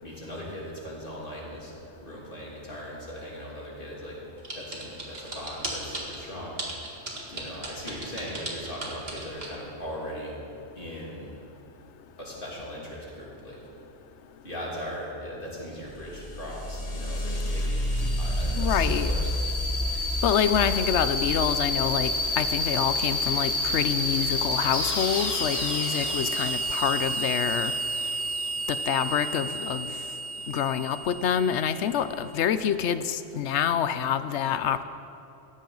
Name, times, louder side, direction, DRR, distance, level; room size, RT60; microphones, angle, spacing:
voice 1, 0.0-1.7 2.0-4.2 4.5-6.9 7.3-10.4 10.7-11.3 12.2-13.6 14.4-17.9 18.2-19.3, equal, 50° left, -4 dB, 3.2 m, -39 dB
sound 1, 4.4-6.2 6.6-9.5, right 2 dB, 60° right, 2.2 m, -35 dB
sound 2, 15.9-32.3, left 1 dB, 35° left, 1.5 m, -29 dB
voice 2, 18.5-19.1 20.2-27.7 28.7-29.9 30.5-34.8, left 9 dB, 80° left, 12 dB, 0.9 m, -27 dB
17.5 x 13.5 x 4.0 m, 2.9 s
omnidirectional pair, 1.2 m